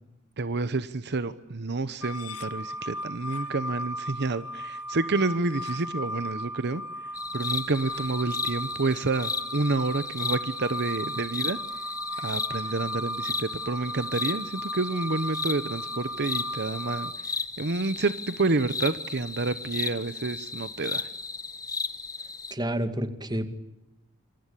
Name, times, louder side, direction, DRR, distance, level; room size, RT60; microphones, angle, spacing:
voice 1, 0.4-6.8 7.3-11.6 12.2-17.3 17.6-21.1, right 3 dB, 55° right, 13 dB, 1.0 m, -29 dB
sound 1, 2.0-17.1, equal, 90° left, 1.4 m, -36 dB
sound 2, 7.1-22.5, left 4 dB, 15° left, 1.5 m, -35 dB
voice 2, 22.5-23.5, right 1 dB, 20° right, 10 dB, 2.1 m, -29 dB
27.0 x 23.5 x 8.5 m, 0.97 s
head